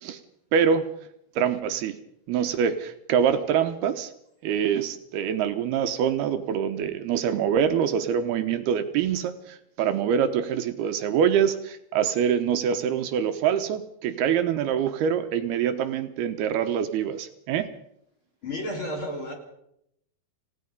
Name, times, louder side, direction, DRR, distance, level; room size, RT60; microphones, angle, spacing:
voice 1, 0.5-0.8 1.4-1.9 2.3-4.1 4.4-17.7, right 8 dB, 75° right, 8 dB, 2.8 m, -25 dB
voice 2, 18.4-19.3, left 1 dB, 30° left, 2 dB, 4.2 m, -32 dB
28.5 x 17.0 x 5.4 m, 0.76 s
omnidirectional pair, 4.9 m